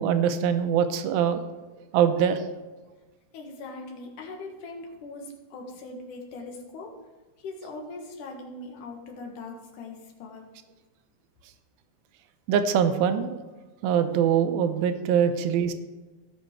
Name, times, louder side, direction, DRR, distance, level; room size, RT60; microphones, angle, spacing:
voice 1, 0.0-1.4 1.9-2.4 12.5-13.4 13.8-15.7, right 8 dB, 90° right, 9 dB, 2.5 m, -23 dB
voice 2, 3.3-6.9 7.4-10.4, left 3 dB, 65° left, 1 dB, 2.8 m, -40 dB
16.5 x 6.2 x 4.4 m, 1.2 s
omnidirectional pair, 4.3 m